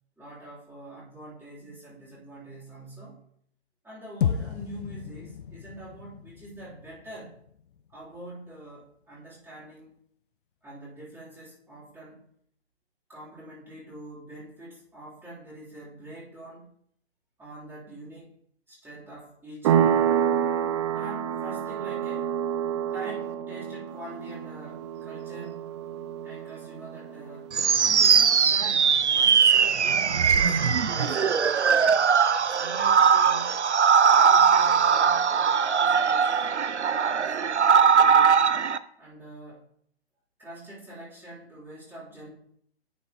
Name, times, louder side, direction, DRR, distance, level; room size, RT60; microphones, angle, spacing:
voice 1, 0.2-3.2 3.8-7.3 7.9-9.9 10.6-12.2 13.1-16.7 17.4-18.3 18.7-20.2 20.9-22.3 22.9-25.6 25.9-26.0 26.2-27.5 28.0-32.0 32.5-33.5 34.1-36.6 37.1-38.6 39.0-39.7 40.4-42.3, right 1 dB, 5° right, -8 dB, 3.3 m, -44 dB
sound 1, 4.2-8.6, left 8 dB, 50° left, 0.5 m, -34 dB
sound 2, 19.6-28.0, right 9 dB, 25° right, 0.5 m, -28 dB
sound 3, 27.5-38.8, right 6 dB, 85° right, 0.6 m, -20 dB
10.0 x 7.3 x 3.0 m, 0.67 s
figure-of-eight pair, 125°, 33 cm